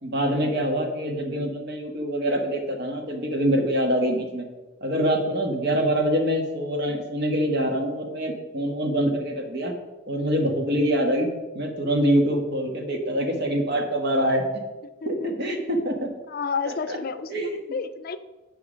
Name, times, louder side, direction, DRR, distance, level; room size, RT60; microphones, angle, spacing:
voice 1, 0.0-4.5 4.8-9.7 10.1-11.3 11.5-14.4 15.0-16.1 16.6-17.0 17.3-17.5, equal, 60° right, 3 dB, 1.4 m, -25 dB
voice 2, 15.0-15.3 16.3-18.2, left 5 dB, 50° left, 12 dB, 0.5 m, -31 dB
9.4 x 5.7 x 5.1 m, 1.1 s
head